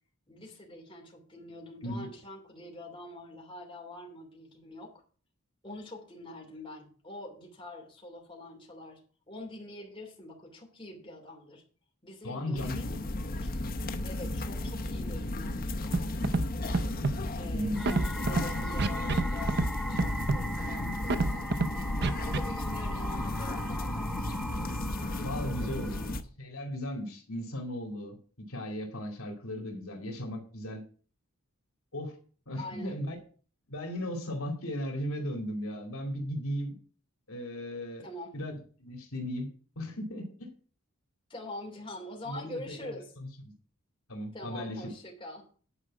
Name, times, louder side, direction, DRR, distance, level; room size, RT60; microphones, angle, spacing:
voice 1, 0.3-4.9 5.6-9.0 9.3-11.6 12.0-13.0 13.4-13.5 14.0-16.3 17.4-24.5 25.6-26.1 32.5-33.0 38.0-38.3 41.3-43.1 44.3-45.5, left 1 dB, 20° left, -1 dB, 2.9 m, -45 dB
voice 2, 12.2-13.0 17.5-18.0 25.2-26.0 26.4-30.8 31.9-32.1 32.5-33.2 33.7-36.7 37.3-38.1 38.3-39.5 39.8-40.5 42.3-42.9 43.4-43.5 44.1-44.9, equal, 75° left, 3 dB, 2.4 m, -36 dB
sound 1, 12.6-26.2, left 1 dB, 40° left, 0.8 m, -34 dB
Scratching (performance technique), 15.9-16.5 16.7-17.2 17.8-18.4 18.8-19.2 19.5-19.7 20.0-20.4 21.1-21.7 22.0-22.4, right 3 dB, 50° right, 0.6 m, -27 dB
sound 2, 17.7-26.2, equal, ahead, 0.5 m, -40 dB
10.0 x 4.9 x 7.5 m, 0.42 s
head